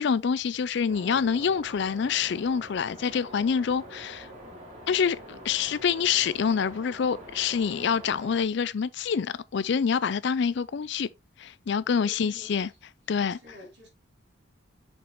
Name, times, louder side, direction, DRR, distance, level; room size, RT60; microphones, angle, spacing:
voice 1, 0.0-4.3 4.9-11.1 11.4-12.7 13.1-13.4, left 6 dB, 60° left, 0.4 m, -26 dB
sound 1, 0.9-8.4, equal, 35° right, 3.2 m, -45 dB
voice 2, 12.0-12.8 13.3-13.9, left 2 dB, 55° right, 3.7 m, -49 dB
7.0 x 5.3 x 3.1 m
head